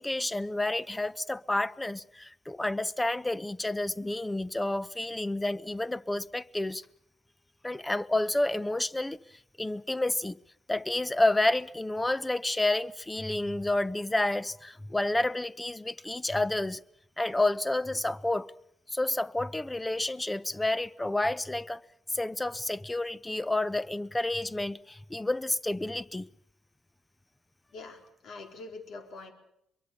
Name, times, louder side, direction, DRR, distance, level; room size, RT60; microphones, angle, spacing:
voice 1, 0.0-6.8 7.6-9.2 9.6-10.4 10.7-16.8 17.2-18.5 18.9-21.8 22.1-26.3, left 2 dB, 15° left, 0.9 m, -30 dB
voice 2, 27.7-29.3, left 3 dB, 60° left, 4.1 m, -44 dB
24.5 x 23.0 x 6.8 m
hypercardioid pair, 55°, 0 cm